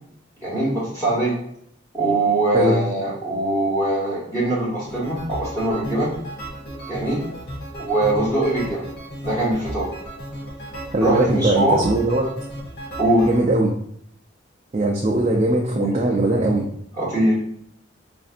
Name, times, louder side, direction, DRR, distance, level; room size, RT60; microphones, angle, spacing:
voice 1, 0.4-1.4 1.9-6.1 6.9-7.2 7.8-8.8 9.2-9.9 11.0-11.8 13.0-13.3 15.8-15.9 16.9-17.4, right 1 dB, 15° left, -8 dB, 1.2 m, -22 dB
sound 1, 4.8-13.4, equal, 55° left, 1.0 m, -34 dB
voice 2, 10.9-12.3 13.2-13.7 14.7-16.6, right 2 dB, 35° right, -2 dB, 0.4 m, -20 dB
5.1 x 2.6 x 2.5 m, 0.69 s
head